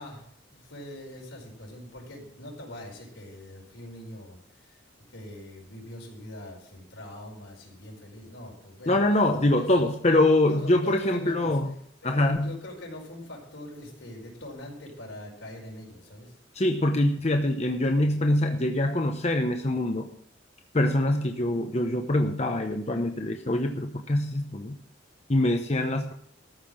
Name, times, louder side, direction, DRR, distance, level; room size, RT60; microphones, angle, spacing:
voice 1, 0.0-4.8 5.1-9.1 9.5-9.9 10.5-11.6 12.0-16.3, left 1 dB, 85° left, -1 dB, 4.9 m, -43 dB
voice 2, 8.9-11.7 12.0-12.6 16.5-20.1 20.7-24.8 25.3-26.1, left 1 dB, 35° left, 4 dB, 0.9 m, -24 dB
14.0 x 5.8 x 8.7 m, 0.63 s
head